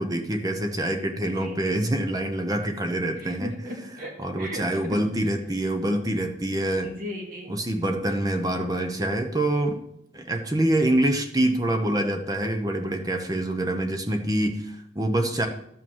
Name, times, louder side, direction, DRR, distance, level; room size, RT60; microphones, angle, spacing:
voice 1, 0.0-3.5 4.2-6.9 7.5-9.8 10.1-15.5, right 1 dB, 20° right, 5 dB, 0.9 m, -25 dB
voice 2, 3.2-4.1 4.4-4.8 6.8-7.5, left 1 dB, 50° right, -1 dB, 2.4 m, -36 dB
12.5 x 5.8 x 7.3 m, 0.75 s
head